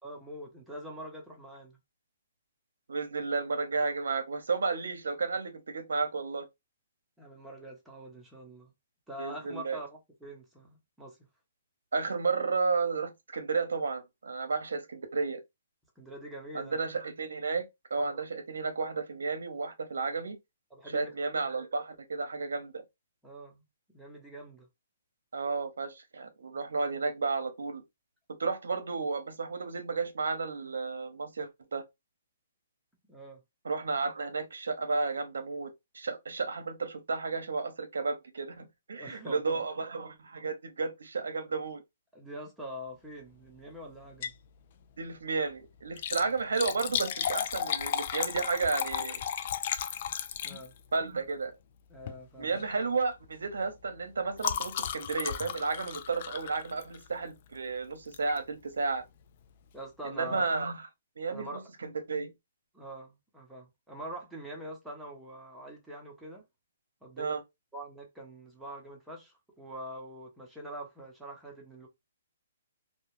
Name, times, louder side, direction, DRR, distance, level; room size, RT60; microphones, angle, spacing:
voice 1, 0.0-1.8 7.2-8.7 9.1-11.2 16.0-16.8 18.0-18.2 20.7-21.1 23.2-23.6 23.9-24.7 33.1-33.4 38.9-39.5 42.1-44.3 46.2-46.3 50.4-50.7 51.9-52.6 59.7-60.5 61.3-61.6 62.7-66.4 67.0-67.4 67.7-71.9, equal, 5° right, 0.8 m, -44 dB
voice 2, 2.9-6.5 9.2-9.8 11.9-15.4 16.5-17.7 17.9-20.4 20.9-22.8 25.3-27.8 28.4-31.8 33.6-41.8 45.0-49.2 50.9-51.5 52.4-59.1 60.0-60.9 61.2-62.3 67.2-67.4, right 4 dB, 80° right, 0.6 m, -32 dB
Liquid, 44.0-44.5 44.8-44.9 45.8-51.0 52.0-52.2 52.6-52.8 53.1-57.2 58.1-58.4 58.9-59.0 59.2-59.3, left 9 dB, 50° left, 0.3 m, -34 dB
2.3 x 2.1 x 3.0 m
hypercardioid pair, 140°, 0 cm